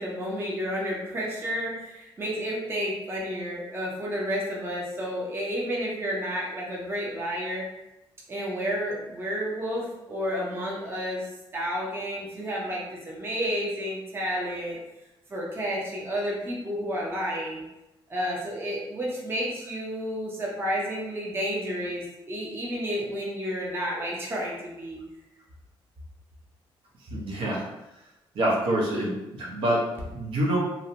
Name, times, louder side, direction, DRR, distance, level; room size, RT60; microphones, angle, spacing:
voice 1, 0.0-7.6 8.3-11.2 11.5-14.8 15.3-17.6 18.1-25.0, equal, 25° right, -4 dB, 0.6 m, -31 dB
voice 2, 27.1-27.6 28.3-29.1 29.4-30.6, right 1 dB, 75° right, -3 dB, 0.8 m, -26 dB
2.5 x 2.1 x 2.8 m, 0.92 s
cardioid pair, 130°, 9 cm